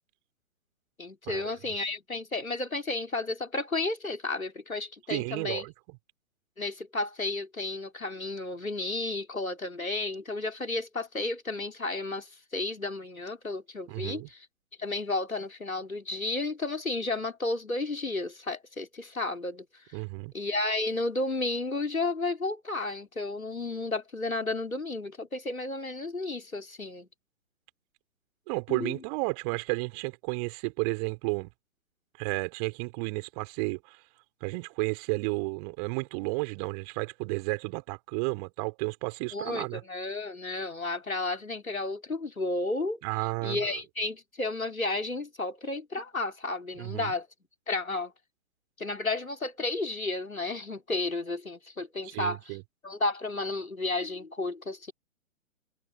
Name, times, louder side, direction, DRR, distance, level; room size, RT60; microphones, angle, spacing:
voice 1, 1.0-5.7 6.6-14.4 14.8-20.0 20.3-27.1 28.7-29.0 39.3-43.0 43.4-47.3 47.7-48.1 48.8-52.6 52.8-54.9, left 2 dB, 85° left, 3.8 m, -32 dB
voice 2, 5.1-5.7 13.9-14.3 19.9-20.3 28.5-31.5 32.2-34.0 34.4-39.8 43.0-43.8 46.8-47.1 52.0-52.6, right 32 dB, 30° right, 3.6 m, -32 dB
figure-of-eight pair, 125°, 41 cm